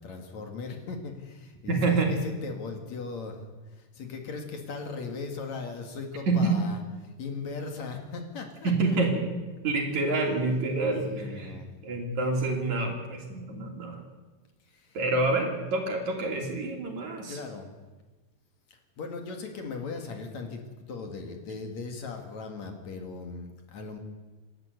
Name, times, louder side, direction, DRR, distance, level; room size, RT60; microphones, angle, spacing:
voice 1, 0.0-9.0 10.2-10.3 11.1-11.7 14.7-15.0 17.2-17.7 18.7-20.6 20.9-24.0, left 4 dB, 60° left, 4 dB, 3.1 m, -38 dB
voice 2, 1.7-2.1 6.3-6.5 8.6-9.3 9.6-11.6 11.8-14.0 14.9-17.4, right 3 dB, 60° right, 2 dB, 4.2 m, -27 dB
27.5 x 12.0 x 8.0 m, 1.2 s
omnidirectional pair, 3.9 m